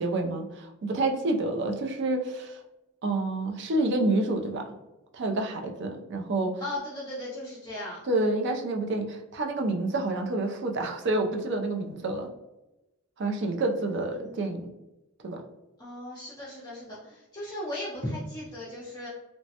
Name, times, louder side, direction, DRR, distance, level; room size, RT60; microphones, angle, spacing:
voice 1, 0.0-2.6 3.0-4.6 5.1-6.6 8.1-12.3 13.2-14.6 15.2-15.4, right 2 dB, 50° right, 3 dB, 0.4 m, -28 dB
voice 2, 6.6-8.0 14.2-14.3 15.8-19.1, left 1 dB, 20° left, -8 dB, 0.5 m, -37 dB
3.1 x 2.1 x 2.8 m, 0.98 s
head